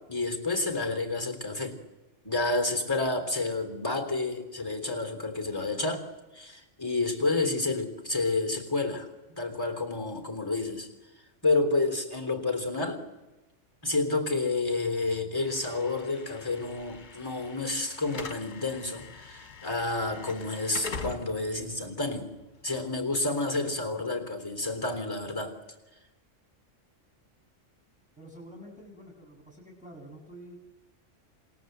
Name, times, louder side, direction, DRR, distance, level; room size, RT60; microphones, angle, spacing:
voice 1, 0.1-1.8 2.2-6.1 6.3-9.1 9.4-10.9 11.4-13.0 13.8-22.3 22.6-25.6, left 3 dB, 15° left, 6 dB, 3.6 m, -30 dB
Slam / Alarm, 15.4-23.4, left 4 dB, 60° left, 1.9 m, -44 dB
voice 2, 28.2-30.6, equal, 5° right, -1 dB, 7.6 m, -48 dB
27.5 x 27.0 x 8.0 m, 1.1 s
omnidirectional pair, 1.3 m